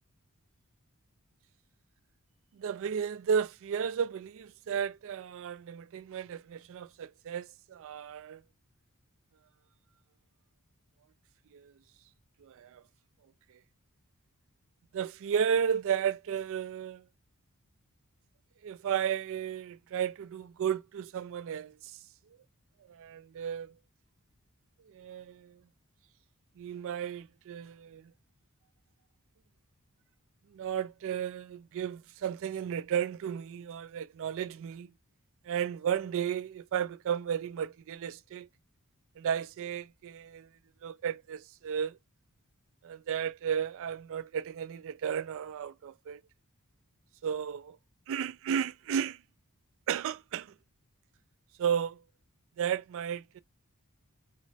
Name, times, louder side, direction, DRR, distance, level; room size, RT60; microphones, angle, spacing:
voice 1, 2.5-8.4 11.5-11.7 12.4-12.8 13.5-13.6 14.9-17.1 18.6-22.0 22.8-23.7 24.9-25.6 26.6-28.1 30.5-34.9 35.4-38.5 39.2-40.5 40.8-42.0 42.8-46.2 47.2-47.8 48.1-49.2 49.9-50.5 51.6-52.0 52.6-53.4, right 8 dB, 60° right, 0.3 m, -34 dB
2.9 x 2.1 x 2.7 m
head